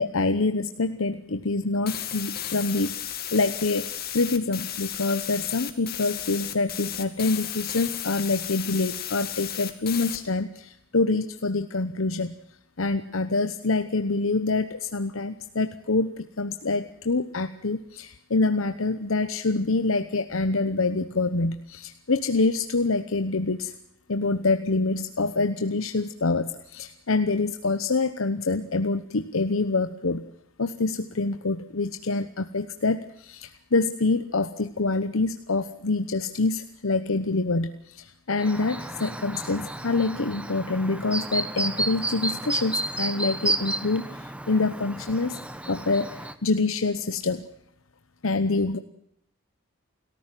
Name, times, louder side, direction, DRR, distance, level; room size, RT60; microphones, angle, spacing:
voice 1, 0.0-12.3 12.8-23.7 24.1-30.3 30.6-45.4 45.7-47.5 48.2-48.8, left 3 dB, 80° left, 9 dB, 1.0 m, -26 dB
sound 1, 1.9-10.2, left 11 dB, 45° left, 2.2 m, -34 dB
Chirp tweet, 38.4-46.3, right 2 dB, 5° right, 1.2 m, -32 dB
29.0 x 14.5 x 7.5 m, 0.78 s
head